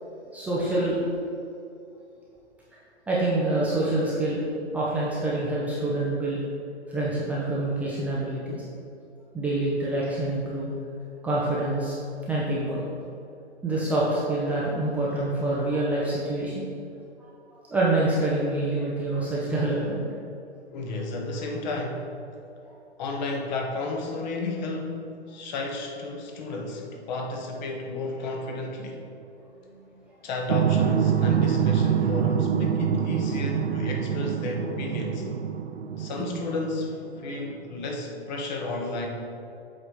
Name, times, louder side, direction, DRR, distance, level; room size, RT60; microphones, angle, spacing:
voice 1, 0.3-1.0 3.1-4.4 4.7-6.4 6.9-8.6 9.3-10.7 11.2-11.9 12.3-12.8 13.6-16.7 17.5-20.0 29.7-29.8, right 2 dB, 5° right, -7 dB, 0.5 m, -26 dB
voice 2, 20.7-22.1 23.0-29.0 30.2-35.3 36.0-39.1, left 2 dB, 40° left, 2 dB, 1.1 m, -32 dB
sound 1, 30.5-37.0, right 8 dB, 70° right, 0.6 m, -25 dB
7.8 x 4.1 x 4.8 m, 2.6 s
figure-of-eight pair, 120°, 34 cm